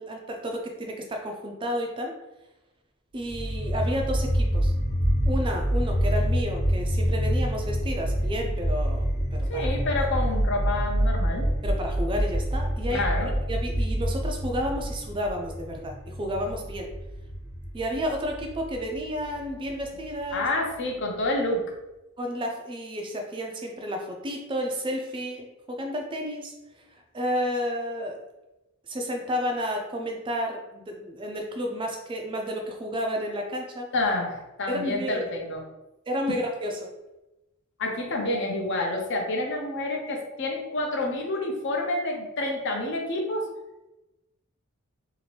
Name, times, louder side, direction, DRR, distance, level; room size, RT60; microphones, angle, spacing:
voice 1, 0.0-2.1 3.1-4.7 5.3-9.8 11.6-16.9 17.7-20.5 22.2-26.5 26.9-28.2 28.9-33.9 34.7-35.2 36.1-36.9, equal, 25° right, 2 dB, 0.3 m, -31 dB
sound 1, 3.2-20.3, equal, 75° left, 1.2 m, -27 dB
voice 2, 9.5-11.5 12.9-13.3 20.3-21.7 33.9-35.6 37.8-43.5, left 2 dB, 55° left, 1 dB, 0.6 m, -28 dB
2.8 x 2.5 x 3.1 m, 0.98 s
head